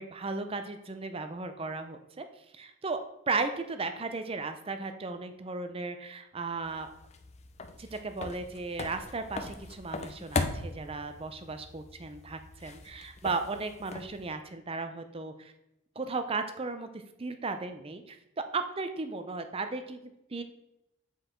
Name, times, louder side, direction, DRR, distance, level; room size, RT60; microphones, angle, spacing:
voice 1, 0.0-2.3 2.5-3.0 3.3-6.9 7.8-15.5 16.0-20.4, right 3 dB, 25° right, 8 dB, 0.5 m, -35 dB
sound 1, 6.6-14.3, left 3 dB, 30° left, 0.5 m, -39 dB
7.7 x 4.6 x 3.8 m, 0.86 s
head